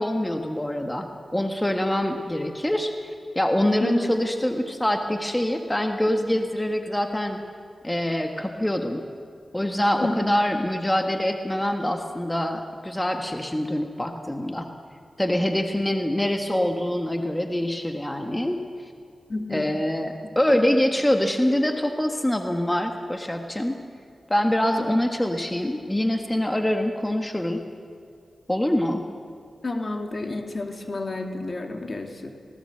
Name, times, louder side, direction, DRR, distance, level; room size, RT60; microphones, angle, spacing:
voice 1, 0.0-7.4 7.8-9.0 9.5-14.7 15.2-18.6 19.5-23.8 24.3-27.6 28.5-29.0, left 1 dB, 15° left, 4 dB, 1.5 m, -25 dB
voice 2, 3.8-4.1 10.0-10.1 19.3-19.7 24.8-24.9 26.8-26.9 29.6-32.3, left 2 dB, 50° left, 4 dB, 2.4 m, -30 dB
19.5 x 17.5 x 7.8 m, 2.4 s
cardioid pair, 50°, 0 cm